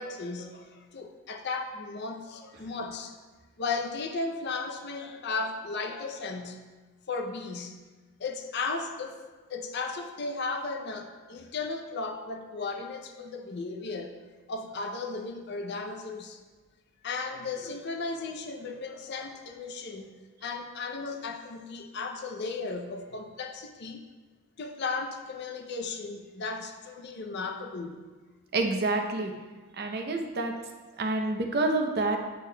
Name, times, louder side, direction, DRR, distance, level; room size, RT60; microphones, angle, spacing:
voice 1, 0.0-3.1 3.6-6.6 7.1-7.8 8.2-9.2 9.5-14.2 14.5-16.4 17.0-20.1 20.4-24.0 24.6-28.0, left 3 dB, 55° left, 5 dB, 0.5 m, -35 dB
voice 2, 28.5-29.3 29.7-30.5 31.0-32.2, right 2 dB, 50° right, 4 dB, 0.6 m, -28 dB
8.7 x 6.5 x 2.2 m, 1.3 s
head